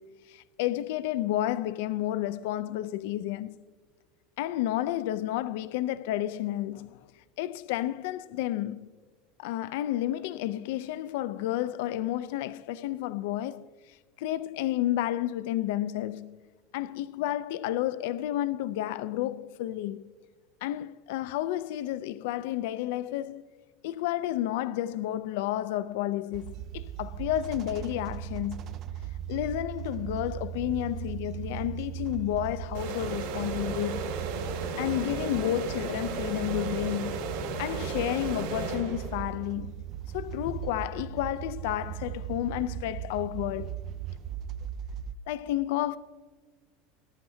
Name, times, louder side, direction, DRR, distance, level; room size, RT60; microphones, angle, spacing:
voice 1, 0.0-3.6 4.4-7.0 7.4-8.9 9.4-16.4 16.7-20.1 20.6-23.4 23.8-28.8 29.3-34.1 34.8-37.2 37.6-39.8 40.1-43.8 45.3-46.0, left 13 dB, 65° left, 0.4 m, -31 dB
sound 1, 26.3-45.1, right 11 dB, 30° right, 0.3 m, -38 dB
sound 2, 32.7-39.4, right 4 dB, 85° right, 3.7 m, -35 dB
20.0 x 10.5 x 2.7 m
supercardioid pair, 175°, 0 cm